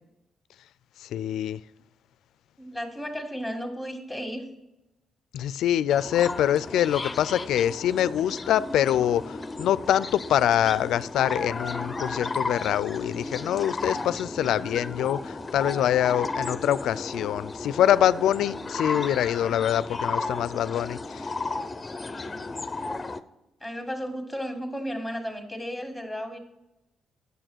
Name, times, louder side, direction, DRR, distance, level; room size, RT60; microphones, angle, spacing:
voice 1, 1.0-1.6 5.3-21.3, left 11 dB, 80° left, 0.3 m, -25 dB
voice 2, 2.6-4.5 22.0-22.4 23.6-26.4, equal, 5° right, 1.9 m, -34 dB
sound 1, 5.9-23.2, left 3 dB, 25° left, 0.6 m, -34 dB
9.0 x 6.8 x 6.1 m
cardioid pair, 90°, 0 cm